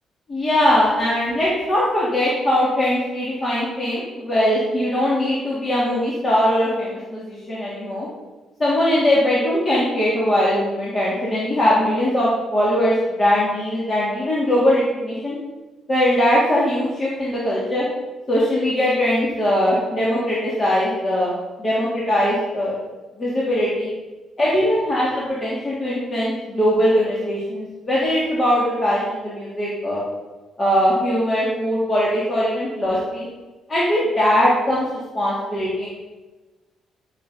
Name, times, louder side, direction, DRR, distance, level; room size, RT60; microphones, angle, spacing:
voice 1, 0.3-8.1 8.6-15.3 15.9-17.9 18.3-21.3 21.6-22.7 23.2-23.9 24.4-30.0 30.6-33.3 33.7-34.8 35.1-35.9, equal, 30° left, -8 dB, 3.1 m, -20 dB
12.0 x 6.4 x 5.1 m, 1.2 s
cardioid pair, 90°, 0 cm